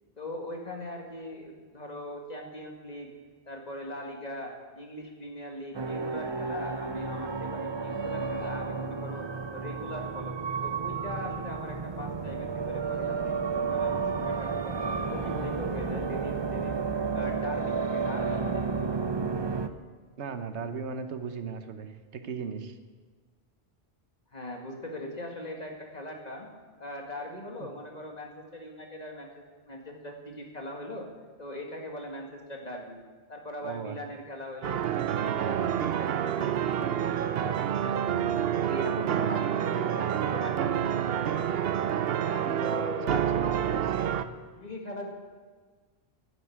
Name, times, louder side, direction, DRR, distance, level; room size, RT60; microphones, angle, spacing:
voice 1, 0.2-3.1 3.5-9.3 9.5-14.8 15.1-16.8 17.1-19.3 24.3-26.5 26.8-31.1 31.4-33.0 33.3-34.8 35.2-38.3 38.7-41.8 42.2-43.7 44.5-45.1, left 1 dB, 40° left, 1 dB, 2.1 m, -40 dB
sound 1, 5.7-19.7, right 5 dB, 30° right, 0.6 m, -32 dB
voice 2, 20.2-22.8 27.6-27.7 33.6-34.0 38.9-39.3 42.6-44.2, right 6 dB, 85° right, 9 dB, 1.3 m, -38 dB
sound 2, 34.6-44.3, right 9 dB, 65° right, 0.8 m, -28 dB
11.0 x 9.7 x 8.5 m, 1.5 s
omnidirectional pair, 1.1 m